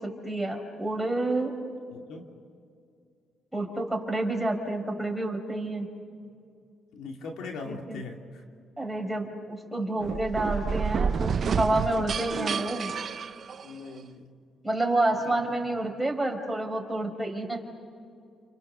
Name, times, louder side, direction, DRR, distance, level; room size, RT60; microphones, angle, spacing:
voice 1, 0.0-1.5 3.5-5.9 7.6-8.0 8.8-12.9 14.6-17.6, right 2 dB, 5° right, 2 dB, 4.8 m, -29 dB
voice 2, 1.9-2.3 6.2-6.3 6.9-8.4 13.6-14.3 15.2-15.6, left 3 dB, 80° left, 2 dB, 2.7 m, -41 dB
sound 1, 10.0-14.0, right 6 dB, 50° right, 0.7 m, -30 dB
29.0 x 29.0 x 6.9 m, 2.3 s
cardioid pair, 90°, 0 cm